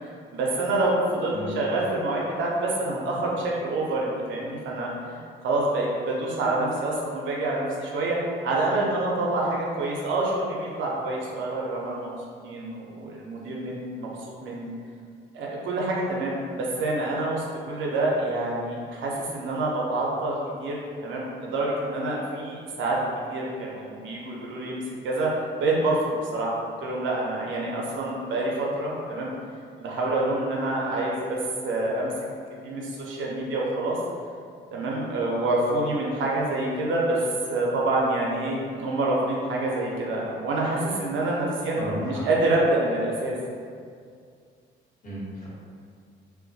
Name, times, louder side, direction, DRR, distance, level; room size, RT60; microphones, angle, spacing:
voice 1, 0.3-5.2 5.4-8.2 8.4-12.1 12.4-14.1 14.4-14.7 15.3-23.0 23.3-26.5 26.8-29.3 29.8-32.1 32.6-34.0 34.7-43.3, right 2 dB, 75° right, -3 dB, 0.6 m, -27 dB
voice 2, 41.8-42.2 45.0-45.5, equal, 40° left, -9 dB, 1.0 m, -34 dB
2.2 x 2.1 x 2.6 m, 2.2 s
cardioid pair, 90°, 20 cm